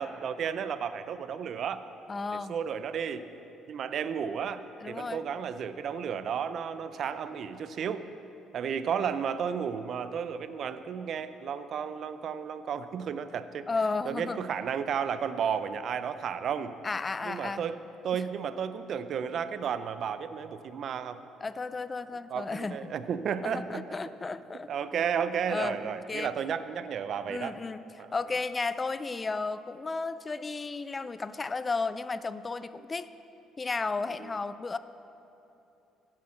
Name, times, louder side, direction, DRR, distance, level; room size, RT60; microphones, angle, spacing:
voice 1, 0.0-1.8 2.3-3.2 3.7-8.1 8.5-13.7 14.1-16.7 17.2-17.8 18.0-21.2 22.3-23.8 24.7-27.6 28.0-28.1 34.2-34.3, right 7 dB, 60° right, 12 dB, 0.5 m, -33 dB
voice 2, 2.1-2.5 4.8-5.2 13.7-14.4 16.8-17.6 18.1-18.2 21.4-22.8 23.4-24.7 25.5-26.3 27.3-27.8 28.1-33.1 33.6-34.8, left 3 dB, 25° left, 14 dB, 0.4 m, -33 dB
9.6 x 8.5 x 6.3 m, 2.9 s
supercardioid pair, 85°, 0 cm